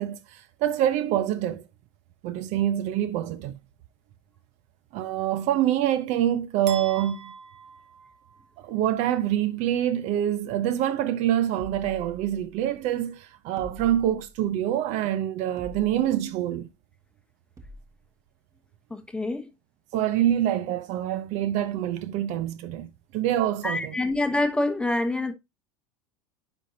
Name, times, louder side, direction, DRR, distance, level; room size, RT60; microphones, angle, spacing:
voice 1, 0.0-1.6 2.2-3.6 4.9-7.3 8.6-16.7 19.9-23.9, right 11 dB, 60° right, 0.7 m, -26 dB
sound 1, 6.7-8.8, right 6 dB, 80° right, 1.2 m, -42 dB
sound 2, 11.6-12.7 13.6-14.5 15.6-16.3 17.6-18.0, equal, 25° right, 1.3 m, -45 dB
voice 2, 18.9-19.5 23.6-25.3, left 2 dB, 5° left, 0.9 m, -26 dB
9.9 x 4.4 x 2.7 m
supercardioid pair, 115°, 14 cm